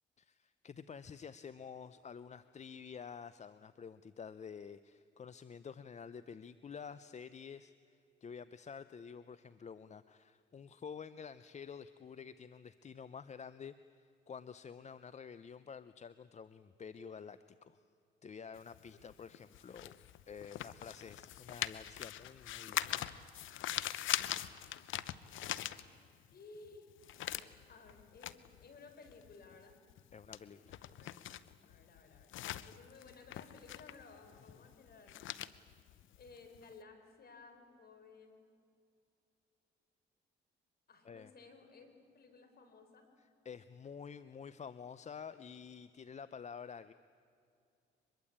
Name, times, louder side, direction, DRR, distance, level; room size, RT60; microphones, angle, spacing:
voice 1, 0.2-17.8 18.2-20.0 20.3-23.2 30.1-31.1 41.0-41.3 43.4-46.9, left 6 dB, 35° left, 14 dB, 0.7 m, -50 dB
sound 1, 18.6-26.3 26.6-36.7, left 13 dB, 80° left, 0.8 m, -42 dB
voice 2, 26.3-26.9 27.7-29.8 30.8-31.2 31.7-32.3 32.6-35.3 36.2-38.4 40.9-41.9 42.1-43.1, left 4 dB, 50° left, 6 dB, 4.3 m, -57 dB
24.0 x 22.0 x 8.6 m, 2.4 s
cardioid pair, 90°, 20 cm